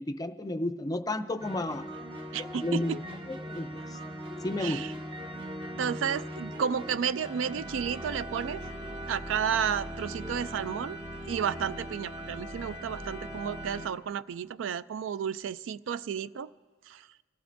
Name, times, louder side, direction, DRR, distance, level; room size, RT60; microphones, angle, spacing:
voice 1, 0.0-1.9 2.4-3.0 3.3-4.0 4.4-4.8, left 1 dB, 20° left, 9 dB, 0.5 m, -32 dB
sound 1, 1.4-13.9, equal, 30° right, 1.1 m, -40 dB
voice 2, 2.3-3.0 4.6-4.9 5.8-8.6 9.1-11.0 11.3-16.5 16.9-17.1, right 7 dB, 85° right, 16 dB, 0.3 m, -32 dB
25.0 x 15.5 x 2.6 m, 1.5 s
head